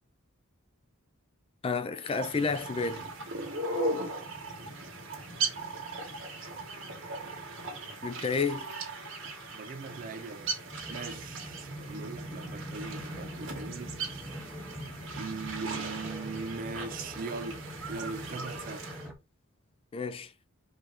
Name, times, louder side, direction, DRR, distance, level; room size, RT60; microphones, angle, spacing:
voice 1, 1.6-3.1 8.0-8.7 19.9-20.3, left 4 dB, 25° left, 0.3 m, -30 dB
sound 1, 2.0-19.1, right 3 dB, 65° right, 1.7 m, -38 dB
voice 2, 9.5-10.6 10.9-14.0 15.2-18.9, right 4 dB, 40° right, 0.4 m, -40 dB
sound 2, 10.7-19.1, equal, 5° right, 0.8 m, -43 dB
4.9 x 2.6 x 3.6 m
head